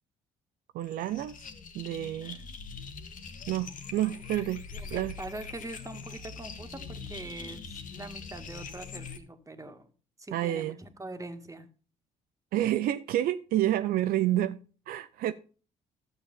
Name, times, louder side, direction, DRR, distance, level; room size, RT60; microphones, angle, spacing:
voice 1, 0.7-1.4 1.7-2.4 3.5-4.6 4.9-5.1 10.3-10.8 12.5-14.6 14.9-15.3, right 13 dB, 70° right, 0.6 m, -29 dB
sound 1, 0.8-9.2, left 5 dB, 55° left, 1.8 m, -43 dB
voice 2, 4.7-9.9 10.2-11.7, right 2 dB, 20° right, 2.0 m, -43 dB
12.5 x 6.9 x 5.6 m
hypercardioid pair, 55°, 16 cm